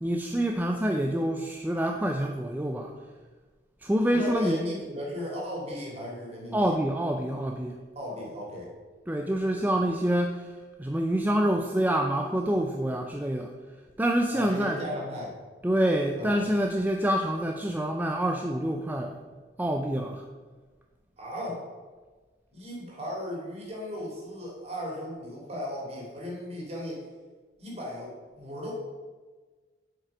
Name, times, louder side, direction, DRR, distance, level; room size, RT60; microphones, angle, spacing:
voice 1, 0.0-2.9 3.8-4.6 6.5-7.8 9.1-13.5 14.0-14.8 15.6-19.2 19.6-20.2, right 1 dB, 10° right, 3 dB, 0.4 m, -27 dB
voice 2, 4.1-6.7 7.9-8.7 14.3-15.4 16.2-16.4 21.2-21.7 22.5-27.0 27.6-28.7, left 1 dB, 35° right, -3 dB, 2.6 m, -36 dB
7.5 x 5.4 x 6.0 m, 1.4 s
head